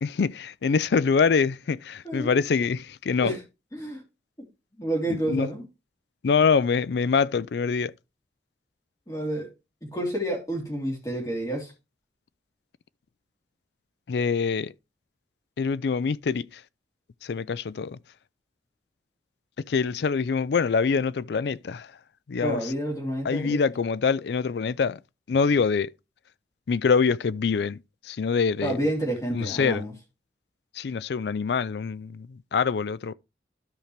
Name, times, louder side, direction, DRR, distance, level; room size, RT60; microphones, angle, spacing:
voice 1, 0.0-3.3 5.3-5.5 6.2-7.9 14.1-14.7 15.6-16.5 17.2-18.0 19.7-21.9 22.3-22.7 23.2-25.0 25.3-25.9 26.7-27.8 28.0-28.8 29.3-29.8 30.8-33.1, left 5 dB, 70° left, 0.4 m, -25 dB
voice 2, 2.0-2.4 3.2-3.4 3.7-4.0 4.8-5.6 9.1-9.5 9.8-11.7 22.4-23.6 28.6-29.9, right 1 dB, 20° left, 3.1 m, -29 dB
13.0 x 5.1 x 3.2 m
head